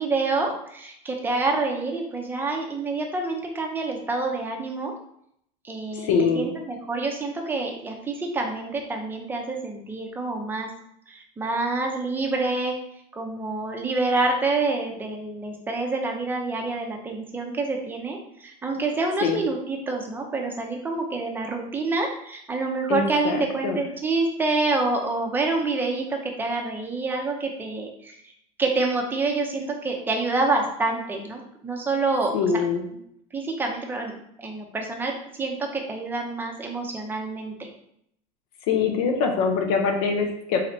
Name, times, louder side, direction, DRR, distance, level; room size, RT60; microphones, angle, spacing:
voice 1, 0.0-4.9 5.6-10.7 11.1-12.7 13.1-28.2 28.6-32.3 33.3-34.1 34.4-35.1 35.4-37.5, right 3 dB, 10° right, 1 dB, 0.6 m, -27 dB
voice 2, 5.9-6.5 19.2-19.4 22.9-23.8 32.3-32.8 38.7-40.6, left 5 dB, 85° left, 3 dB, 0.6 m, -23 dB
4.0 x 3.2 x 2.7 m, 0.71 s
cardioid pair, 155°, 18 cm